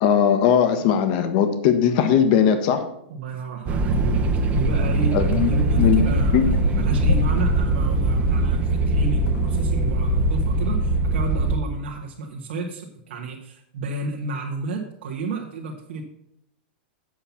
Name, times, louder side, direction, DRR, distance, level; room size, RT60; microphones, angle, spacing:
voice 1, 0.0-2.9 5.1-5.5 5.8-6.0 6.3-6.6 7.0-7.2, left 8 dB, 50° left, 8 dB, 1.2 m, -19 dB
voice 2, 3.1-4.2 4.5-16.0, right 3 dB, 75° right, -1 dB, 1.4 m, -31 dB
sound 1, 3.7-11.6, right 3 dB, 25° right, 0.8 m, -22 dB
sound 2, 4.6-9.7 10.0-10.4, left 4 dB, 80° left, 0.7 m, -25 dB
7.8 x 5.8 x 7.1 m, 0.74 s
supercardioid pair, 145°, 6 cm